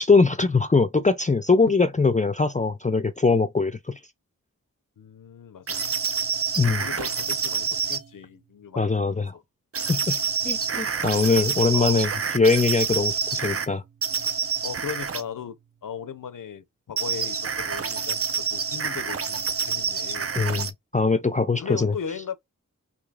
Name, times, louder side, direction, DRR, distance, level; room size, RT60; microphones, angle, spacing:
voice 1, 0.0-4.0 6.6-6.8 8.8-9.3 9.9-10.2 10.4-13.8 20.4-21.9, left 4 dB, 25° left, 0.4 m, -22 dB
voice 2, 5.0-5.9 6.8-9.4 10.4-10.7 11.7-12.1 14.6-15.6 15.8-20.3 21.6-22.4, left 7 dB, 80° left, 0.6 m, -37 dB
sound 1, 5.7-8.0 9.7-13.7 14.0-15.3 17.0-20.7, right 6 dB, 45° right, 0.5 m, -27 dB
4.7 x 2.8 x 2.3 m
wide cardioid pair, 75°, 32 cm